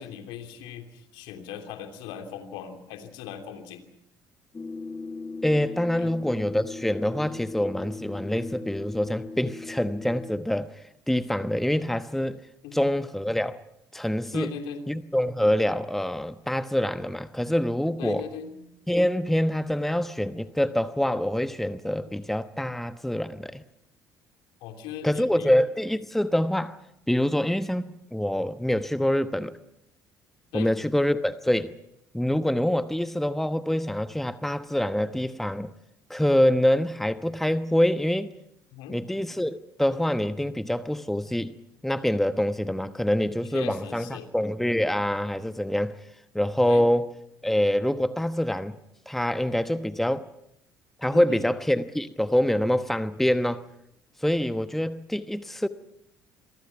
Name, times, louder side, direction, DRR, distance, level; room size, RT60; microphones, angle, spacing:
voice 1, 0.0-3.8 6.0-6.1 12.6-12.9 14.3-14.8 18.0-18.6 24.6-25.5 30.5-30.7 38.7-39.0 43.5-44.3 46.7-46.8 51.1-51.4, left 8 dB, 65° left, 3.0 m, -39 dB
sound 1, 4.5-10.4, left 3 dB, 25° left, 1.5 m, -38 dB
voice 2, 5.4-10.7 11.1-12.4 12.7-13.6 13.9-14.5 14.9-18.3 18.9-23.6 25.0-26.8 27.1-29.5 30.5-31.7 32.1-35.7 36.1-38.3 38.9-41.5 41.8-46.0 46.3-47.1 47.4-48.7 49.1-50.2 51.0-53.6 54.2-55.7, left 1 dB, 5° left, 1.1 m, -25 dB
27.5 x 23.5 x 5.9 m
figure-of-eight pair, 55°, 9 cm